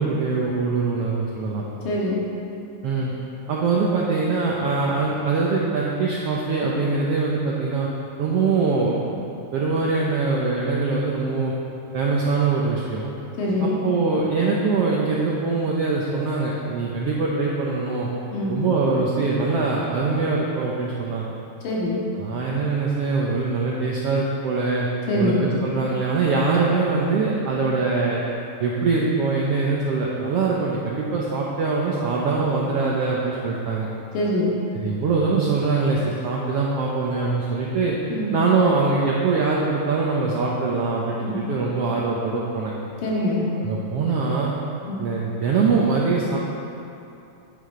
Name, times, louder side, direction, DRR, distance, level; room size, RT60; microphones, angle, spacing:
voice 1, 0.0-1.6 2.8-3.1 3.5-7.9 8.2-9.0 9.5-11.5 11.9-13.1 13.6-18.1 18.5-21.3 22.2-24.9 25.1-28.2 28.6-33.9 34.7-37.9 38.3-42.7 43.6-44.5 45.0-46.4, right 4 dB, 80° right, -3 dB, 1.3 m, -23 dB
voice 2, 1.9-2.2 13.4-13.7 18.3-18.5 21.6-22.0 25.1-25.4 34.1-34.5 38.1-38.3 41.2-41.4 43.0-43.5 44.8-45.0, left 2 dB, 90° left, -5 dB, 3.6 m, -23 dB
10.5 x 10.0 x 3.8 m, 2.7 s
omnidirectional pair, 3.8 m